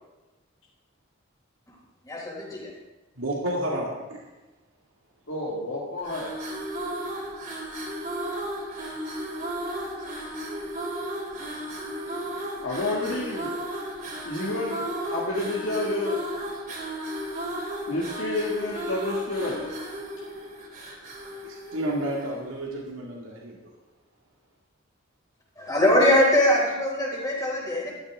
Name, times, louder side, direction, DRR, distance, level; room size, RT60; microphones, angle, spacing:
voice 1, 2.0-2.7 25.6-27.9, left 1 dB, 15° left, -3 dB, 3.8 m, -22 dB
voice 2, 3.2-4.2 21.2-23.6, right 1 dB, 70° right, -3 dB, 2.3 m, -31 dB
voice 3, 5.3-6.4 12.6-13.6 14.2-14.9 15.1-16.2 17.9-19.7, left 2 dB, 65° left, -6 dB, 2.2 m, -29 dB
sound 1, 6.0-22.4, right 1 dB, 45° right, 3.1 m, -34 dB
13.0 x 12.5 x 3.7 m, 1.1 s
head